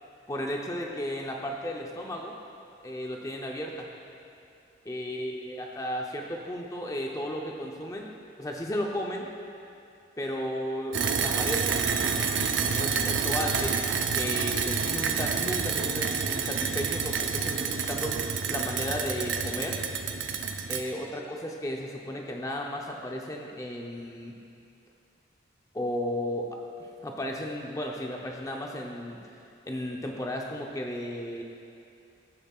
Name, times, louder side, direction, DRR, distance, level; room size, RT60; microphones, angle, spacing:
voice 1, 0.3-2.4 2.8-3.9 4.8-8.1 8.4-9.3 10.2-11.8 12.6-13.8 14.1-19.8 20.7-24.4 25.7-26.5 27.0-29.2 29.7-31.4, equal, 20° left, 0 dB, 0.6 m, -34 dB
sound 1, 10.9-20.8, right 5 dB, 85° right, 0.5 m, -28 dB
15.0 x 7.4 x 2.4 m, 2.7 s
head